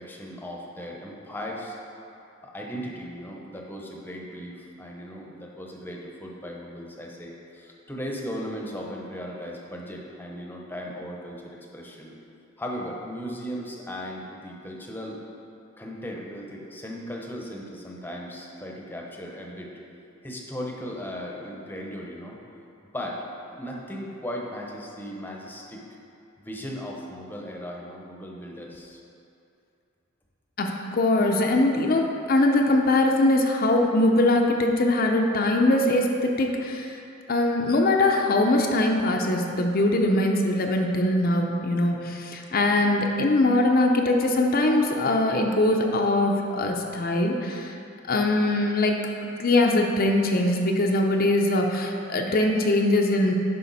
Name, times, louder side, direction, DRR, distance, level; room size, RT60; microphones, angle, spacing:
voice 1, 0.0-1.8 2.4-12.1 12.6-15.2 15.8-19.7 20.2-22.4 22.9-23.2 23.5-25.8 26.4-29.0, equal, 10° left, -1 dB, 0.9 m, -37 dB
voice 2, 30.6-37.0 37.3-47.7 48.1-49.0 49.2-53.3, left 2 dB, 45° left, 2 dB, 0.6 m, -22 dB
10.0 x 5.6 x 4.1 m, 2.7 s
head